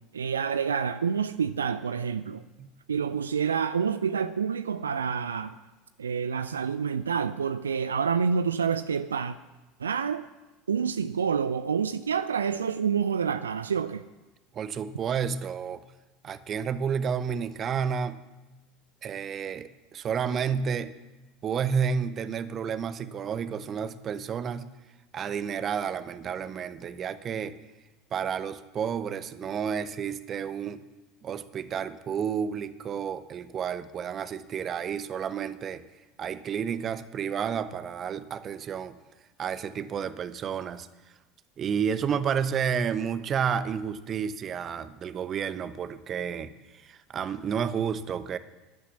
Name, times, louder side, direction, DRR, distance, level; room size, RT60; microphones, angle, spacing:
voice 1, 0.1-2.4 2.9-5.6 6.0-9.4 9.8-10.3 10.7-14.0, right 6 dB, 75° right, 0.4 m, -28 dB
voice 2, 14.5-15.8 16.2-18.2 19.0-20.9 21.4-24.7 25.1-27.6 28.1-30.8 31.2-35.8 36.2-39.0 39.4-40.9 41.6-48.4, right 7 dB, 35° right, 0.9 m, -31 dB
12.0 x 11.5 x 7.3 m
figure-of-eight pair, 70°, 0 cm